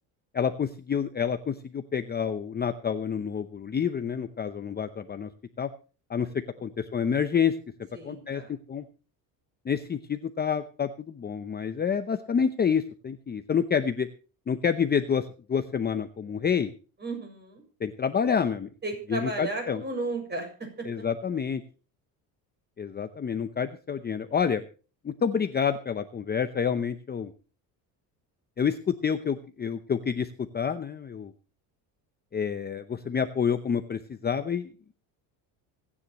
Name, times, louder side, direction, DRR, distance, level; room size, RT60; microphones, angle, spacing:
voice 1, 0.3-5.3 5.6-5.7 6.1-6.3 6.6-7.5 8.0-8.4 8.7-8.8 9.6-14.1 14.5-16.7 17.8-18.7 19.1-19.8 20.8-21.6 22.8-24.6 25.0-27.3 28.6-31.3 32.3-34.7, left 7 dB, 25° left, 9 dB, 0.8 m, -28 dB
voice 2, 7.9-8.5 17.0-17.6 18.8-20.7, right 2 dB, 25° right, 3 dB, 6.7 m, -34 dB
25.5 x 9.9 x 3.1 m, 0.37 s
cardioid pair, 125°, 41 cm